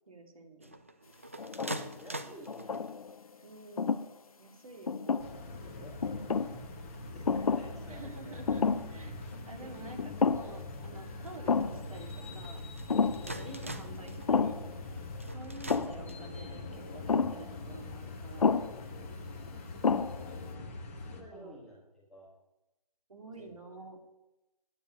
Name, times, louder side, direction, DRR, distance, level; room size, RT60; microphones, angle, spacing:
voice 1, 0.1-0.8 3.4-4.0 4.4-5.2 7.9-9.2 9.5-12.6 13.2-14.7 15.3-18.5 21.3-21.6 23.1-24.0, right 2 dB, 55° right, 3 dB, 2.4 m, -49 dB
sound 1, 0.6-3.1 3.8-4.3 4.8-4.9 5.1-5.6 6.0-16.5, right 1 dB, 20° right, 0.4 m, -47 dB
sound 2, 1.4-2.0 2.5-3.2 3.8-4.1 4.9-5.6 6.0-6.6 7.3-7.8 8.0-8.1 8.5-9.0 9.3-9.4 10.0-10.7 10.9-11.0 11.5-11.9 12.9-13.3 14.3-14.7 15.7-16.1 17.1-17.5 18.4-18.8 19.4-19.5 19.8-20.3, left 5 dB, 60° left, 0.7 m, -30 dB
voice 2, 1.5-2.8 5.1-5.2 5.6-8.4 9.6-9.7 19.3-19.9 20.9-22.3 23.4-23.5, equal, ahead, -9 dB, 1.9 m, -53 dB
sound 3, 5.2-21.2, left 2 dB, 20° left, 1.1 m, -43 dB
9.3 x 7.1 x 9.0 m, 0.97 s
figure-of-eight pair, 160°, 21 cm